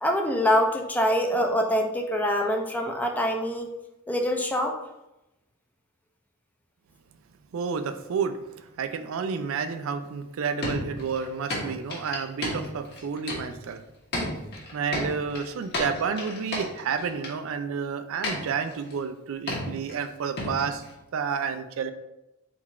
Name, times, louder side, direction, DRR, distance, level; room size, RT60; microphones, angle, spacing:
voice 1, 0.0-3.7 4.1-4.8, equal, 10° left, 3 dB, 0.4 m, -24 dB
voice 2, 7.5-13.8 14.7-20.8 21.1-21.9, right 6 dB, 65° right, 10 dB, 0.4 m, -30 dB
sound 1, 10.6-13.8 14.1-17.3 18.2-18.9 19.5-20.1 20.4-20.9, left 1 dB, 50° left, 1.1 m, -33 dB
3.8 x 2.4 x 4.2 m, 0.93 s
head